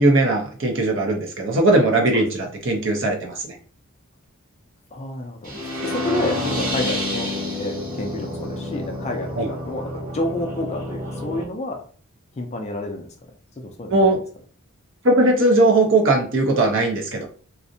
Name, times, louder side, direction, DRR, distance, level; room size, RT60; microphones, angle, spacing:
voice 1, 0.0-3.6 9.4-9.5 13.9-14.2 15.0-17.3, right 2 dB, 55° right, 2 dB, 0.6 m, -19 dB
voice 2, 4.9-7.3 7.6-11.8 12.4-13.1 13.6-14.2, left 1 dB, 30° left, 4 dB, 0.3 m, -29 dB
sound 1, 5.4-11.4, left 1 dB, 35° right, 0.9 m, -29 dB
2.5 x 2.0 x 2.6 m, 0.43 s
head